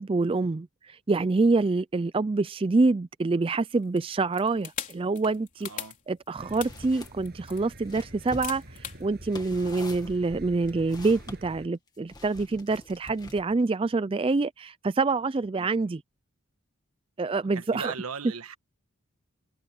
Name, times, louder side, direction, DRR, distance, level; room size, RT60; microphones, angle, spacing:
voice 1, 0.0-5.7 6.1-8.6 9.0-16.0 17.2-17.9, right 3 dB, 25° right, 0.3 m, -26 dB
sound 1, 3.7-9.0, left 9 dB, 35° left, 3.9 m, -40 dB
voice 2, 5.6-5.9 15.6-15.7 17.5-18.6, right 5 dB, 85° right, 1.5 m, -38 dB
sound 2, 6.4-11.7, right 1 dB, 45° right, 7.8 m, -47 dB
sound 3, 6.6-7.1 7.5-11.4 12.1-13.6, left 2 dB, 20° left, 2.0 m, -45 dB
head